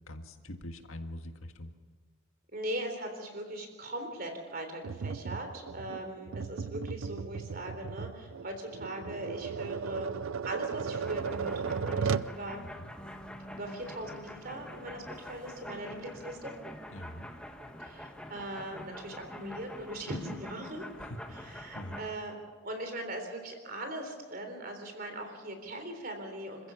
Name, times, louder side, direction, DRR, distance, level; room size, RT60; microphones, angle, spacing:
voice 1, 0.1-1.7 12.8-12.9 16.9-17.3 21.0-21.1 21.5-22.0, left 1 dB, 80° left, 6 dB, 1.8 m, -44 dB
voice 2, 2.5-10.1 10.4-12.6 13.5-16.5 17.8-20.9 21.3-22.4 22.6-26.7, right 1 dB, 45° right, 5 dB, 3.6 m, -40 dB
Tap, 4.8-12.4, right 6 dB, 75° right, 0.5 m, -35 dB
sound 1, 10.9-22.1, left 1 dB, 5° left, 1.3 m, -46 dB
27.5 x 15.0 x 7.1 m, 1.5 s
head